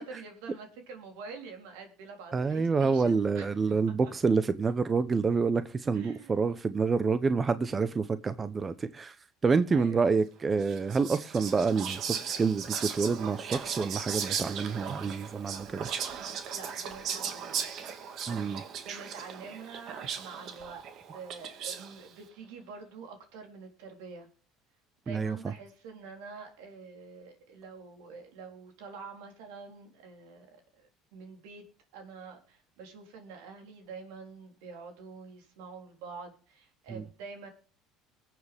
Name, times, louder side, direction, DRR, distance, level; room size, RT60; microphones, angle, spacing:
voice 1, 0.0-3.5 4.0-4.1 5.9-6.4 9.7-10.0 16.5-17.6 18.5-20.9 21.1-24.3 25.1-31.7 31.9-37.5, right 5 dB, 80° right, 3.7 m, -46 dB
voice 2, 2.3-9.2 9.4-15.9 18.3-18.6 25.1-25.4 36.9-37.0, right 4 dB, 30° right, 0.8 m, -28 dB
Whispering, 10.6-22.0, right 7 dB, 60° right, 2.0 m, -37 dB
21.5 x 7.6 x 3.5 m
supercardioid pair, 85°, 0 cm